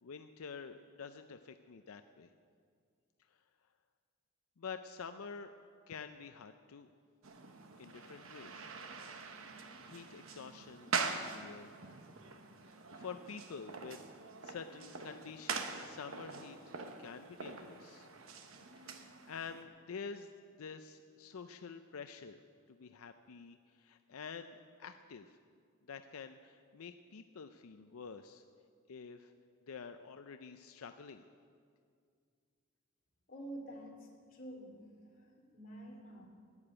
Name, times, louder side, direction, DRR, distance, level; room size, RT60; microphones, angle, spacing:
voice 1, 0.0-2.3 4.6-5.5 5.9-6.9 7.8-8.7 9.8-11.7 12.9-14.0 14.4-16.6 17.0-18.1 18.8-20.3 20.6-22.4 22.7-25.4 25.9-28.4 28.9-29.3 29.7-31.3, left 5 dB, 85° left, 8 dB, 0.5 m, -48 dB
sound 1, 7.2-19.6, right 4 dB, 70° right, 1.0 m, -44 dB
voice 2, 33.3-34.9 35.1-36.3, right 1 dB, 40° left, 0 dB, 2.6 m, -49 dB
11.5 x 9.8 x 8.7 m, 2.2 s
head